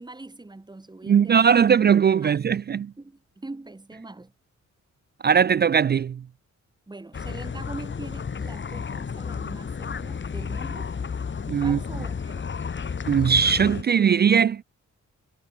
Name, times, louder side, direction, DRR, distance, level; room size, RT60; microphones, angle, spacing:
voice 1, 0.0-1.6 2.2-2.4 3.0-4.3 6.9-10.9 11.6-12.5, right 2 dB, 15° right, 5.6 m, -42 dB
voice 2, 1.1-2.9 5.2-6.2 11.5-11.8 13.1-14.6, right 7 dB, 35° right, 0.4 m, -19 dB
sound 1, 7.1-13.8, left 6 dB, 40° left, 7.0 m, -32 dB
wide cardioid pair, 155°, 29 cm